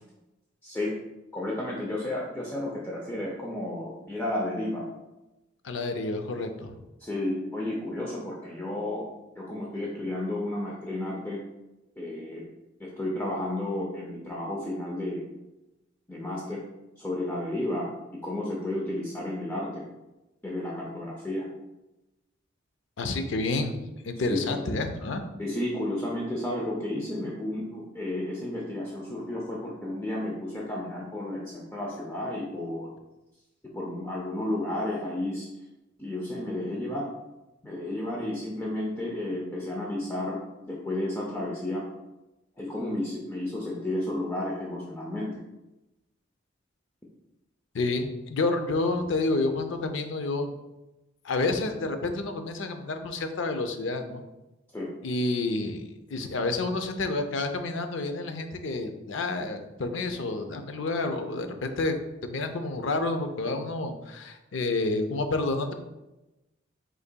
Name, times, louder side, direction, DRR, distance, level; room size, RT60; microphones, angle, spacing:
voice 1, 0.6-0.9 1.3-4.9 7.0-9.0 9.4-11.4 12.0-12.4 12.8-15.2 16.1-16.6 17.0-17.9 18.2-19.9 20.4-21.5 24.3-24.6 25.4-32.9 33.7-35.5 36.0-37.1 37.6-40.4 40.7-41.8 42.6-45.4 54.7-54.9, left 1 dB, 10° left, -3 dB, 0.5 m, -32 dB
voice 2, 5.6-6.7 23.0-25.2 47.7-50.5 51.2-54.2 55.0-65.7, left 2 dB, 70° left, 7 dB, 0.5 m, -29 dB
5.3 x 3.9 x 2.2 m, 0.99 s
head